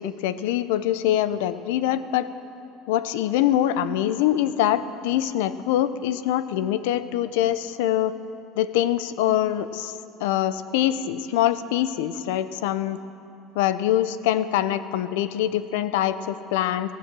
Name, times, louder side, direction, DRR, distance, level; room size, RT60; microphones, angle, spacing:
voice 1, 0.0-2.3 2.9-8.1 8.6-9.9 10.2-13.0 13.5-16.9, left 12 dB, 90° left, 14 dB, 0.6 m, -24 dB
15.5 x 12.5 x 7.5 m, 2.6 s
cardioid pair, 135°, 0 cm